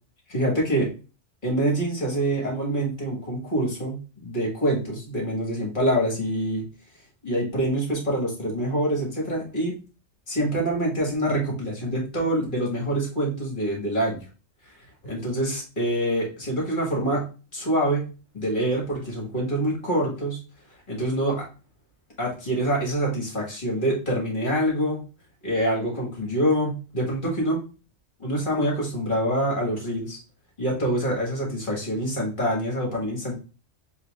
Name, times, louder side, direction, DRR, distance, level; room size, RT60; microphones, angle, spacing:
voice 1, 0.3-0.9 1.4-6.6 7.2-9.7 10.3-14.3 15.0-17.3 17.5-20.4 20.9-21.5 22.2-25.0 25.4-27.6 28.2-30.2 30.6-33.3, right 1 dB, 45° left, -2 dB, 1.7 m, -25 dB
7.1 x 2.8 x 2.4 m, 0.34 s
omnidirectional pair, 1.2 m